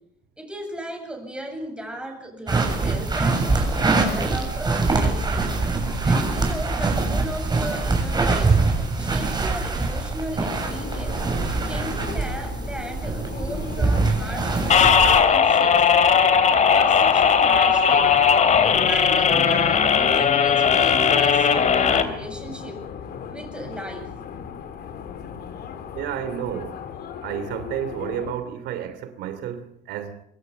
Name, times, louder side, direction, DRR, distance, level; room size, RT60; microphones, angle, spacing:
voice 1, 0.4-5.5 6.0-8.6 9.0-11.3 11.6-15.8 16.5-18.2 18.8-22.9 23.3-24.1, right 1 dB, 5° right, 7.9 m, -35 dB
sound 1, 2.5-15.2, right 3 dB, 25° right, 7.3 m, -23 dB
sound 2, 10.4-28.3, left 7 dB, 70° left, 4.1 m, -37 dB
sound 3, 14.7-22.0, left 6 dB, 45° left, 3.0 m, -17 dB
voice 2, 25.9-26.8 27.2-30.2, right 9 dB, 85° right, 2.9 m, -31 dB
25.5 x 22.5 x 7.0 m
cardioid pair, 110°, 17 cm